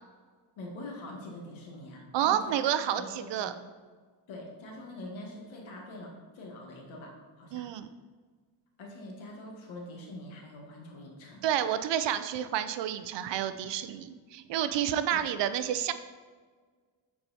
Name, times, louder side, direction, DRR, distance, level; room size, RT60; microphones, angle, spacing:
voice 1, 0.6-3.6 4.3-7.7 8.8-11.5 15.1-15.2, left 1 dB, 80° left, 0 dB, 1.9 m, -44 dB
voice 2, 2.1-3.5 7.5-7.9 11.4-15.9, right 10 dB, 65° right, 11 dB, 0.5 m, -29 dB
8.6 x 4.7 x 4.2 m, 1.5 s
cardioid pair, 135°, 46 cm